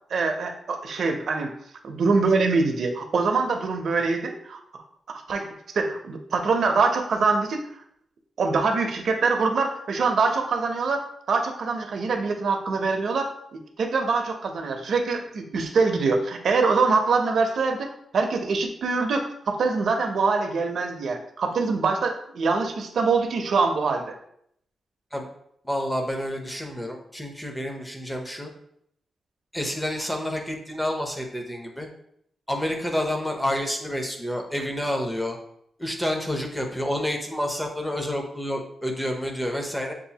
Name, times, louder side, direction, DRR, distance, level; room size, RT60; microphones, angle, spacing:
voice 1, 0.1-1.5 1.8-4.6 5.1-5.5 5.7-7.6 8.4-11.0 11.3-17.9 18.1-24.1, right 4 dB, 60° right, 4 dB, 0.6 m, -24 dB
voice 2, 25.6-28.5 29.5-31.9 32.5-35.4 35.8-39.9, left 1 dB, 5° left, 2 dB, 0.7 m, -29 dB
6.8 x 2.5 x 2.8 m, 0.71 s
wide cardioid pair, 140°, 0 cm